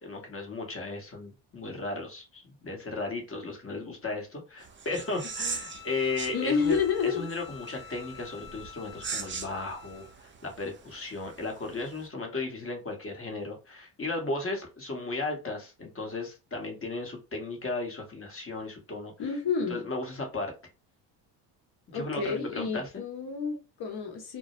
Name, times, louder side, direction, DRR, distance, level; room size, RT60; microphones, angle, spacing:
voice 1, 0.0-6.8 7.1-19.1 19.7-20.5 21.9-23.0, left 3 dB, 25° left, 0.9 m, -35 dB
sound 1, 4.6-12.1, right 5 dB, 25° right, 0.5 m, -41 dB
Bowed string instrument, 5.0-10.2, left 10 dB, 90° left, 0.6 m, -49 dB
voice 2, 6.3-7.2 19.2-19.9 21.9-24.4, left 6 dB, 50° left, 1.0 m, -29 dB
2.2 x 2.0 x 2.9 m
supercardioid pair, 70°, 50 cm